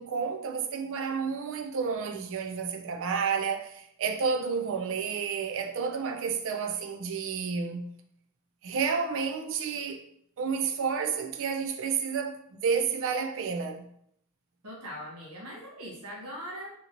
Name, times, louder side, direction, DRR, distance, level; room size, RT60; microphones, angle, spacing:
voice 1, 0.0-7.9 8.6-10.0 10.4-13.9, right 6 dB, 60° right, 0.4 m, -30 dB
voice 2, 14.6-16.7, equal, 90° right, 0.9 m, -41 dB
2.9 x 2.8 x 2.5 m
head